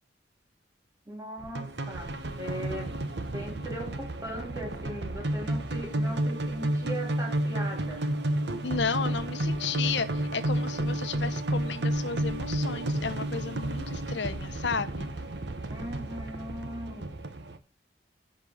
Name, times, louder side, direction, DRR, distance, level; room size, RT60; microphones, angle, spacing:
voice 1, 1.1-2.9 3.3-8.1 15.7-17.1, right 1 dB, 20° right, 1 dB, 2.9 m, -39 dB
sound 1, 1.4-17.6, right 1 dB, 70° right, 1.1 m, -31 dB
voice 2, 8.6-15.1, left 5 dB, 75° left, 11 dB, 0.9 m, -33 dB
10.5 x 4.6 x 7.0 m, 0.31 s
head